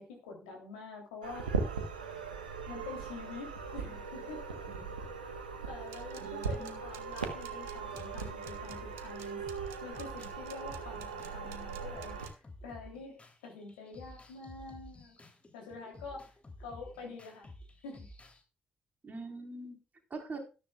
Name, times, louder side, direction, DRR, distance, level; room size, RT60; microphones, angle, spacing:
voice 1, 0.0-1.5 2.7-4.6 5.6-9.4 9.8-13.2 13.4-15.2 15.5-16.3 16.6-17.5 17.8-18.1, left 4 dB, 75° left, 0 dB, 3.1 m, -46 dB
sound 1, 1.2-12.3, right 5 dB, 85° right, 1.2 m, -39 dB
sound 2, 5.9-12.3, right 11 dB, 70° right, 1.3 m, -52 dB
voice 2, 6.2-6.8 19.0-19.8 20.1-20.4, right 3 dB, 40° right, 4 dB, 4.2 m, -44 dB
sound 3, 6.8-7.4 7.9-10.4 10.7-18.4, left 1 dB, 30° left, 3.2 m, -52 dB
13.0 x 12.5 x 2.4 m, 0.32 s
figure-of-eight pair, 40°, 4 cm